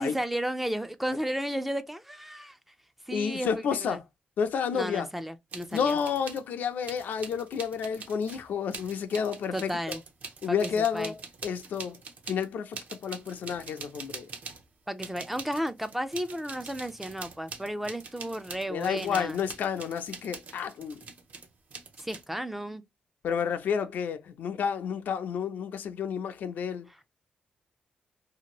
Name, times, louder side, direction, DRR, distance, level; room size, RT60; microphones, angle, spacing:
voice 1, 0.0-2.6 3.1-4.0 4.7-6.0 9.5-10.0 10.5-11.1 14.9-19.4 22.0-22.8 26.9-27.1, equal, 5° right, 0.4 m, -33 dB
voice 2, 3.1-4.0 4.4-5.1 5.7-10.0 10.4-12.0 12.3-14.3 18.7-21.0 23.2-26.9, left 7 dB, 75° left, 0.5 m, -30 dB
sound 1, 5.5-6.4 6.8-14.7 15.0-22.2, right 5 dB, 55° right, 0.7 m, -44 dB
2.8 x 2.5 x 2.8 m
cardioid pair, 125°, 3 cm